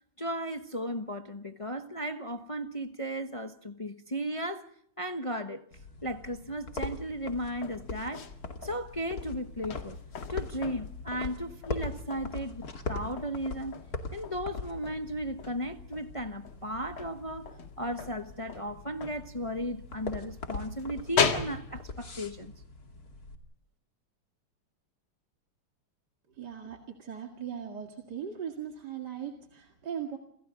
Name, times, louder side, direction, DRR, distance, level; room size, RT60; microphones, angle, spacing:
voice 1, 0.2-4.7 5.0-5.6 6.0-8.3 8.6-10.0 10.3-13.8 14.1-22.5, equal, 20° left, 0.9 m, -35 dB
sound 1, 5.7-23.4, left 3 dB, 45° left, 2.9 m, -42 dB
sound 2, 7.5-21.9, left 5 dB, 70° left, 2.7 m, -38 dB
voice 2, 26.4-30.2, right 8 dB, 50° right, 2.6 m, -39 dB
29.0 x 28.0 x 3.9 m
omnidirectional pair, 2.4 m